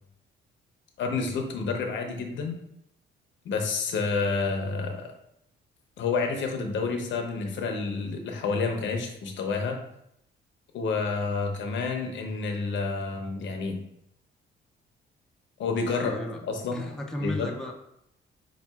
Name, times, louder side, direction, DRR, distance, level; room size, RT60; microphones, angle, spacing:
voice 1, 1.0-2.6 3.4-5.1 6.0-9.8 10.7-13.8 15.6-16.1 16.5-16.8 17.2-17.5, left 4 dB, 70° left, 3 dB, 0.7 m, -29 dB
voice 2, 15.9-16.5 16.7-17.7, left 1 dB, 5° left, 0 dB, 0.5 m, -34 dB
5.5 x 2.3 x 2.3 m, 0.77 s
cardioid pair, 90°, 20 cm